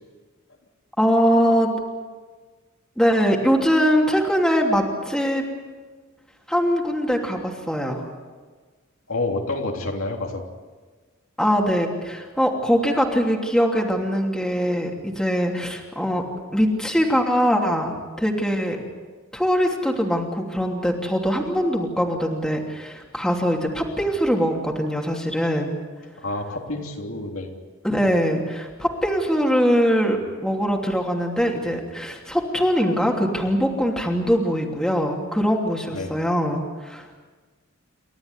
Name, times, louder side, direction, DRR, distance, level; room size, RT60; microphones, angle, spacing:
voice 1, 1.0-1.7 3.0-5.4 6.5-8.0 11.4-16.2 16.5-18.8 19.3-25.8 27.8-37.2, equal, 5° left, 0 dB, 3.0 m, -22 dB
voice 2, 9.1-10.4 26.2-27.5 35.9-36.2, left 2 dB, 70° left, 1 dB, 3.3 m, -28 dB
29.0 x 13.5 x 9.8 m, 1.4 s
head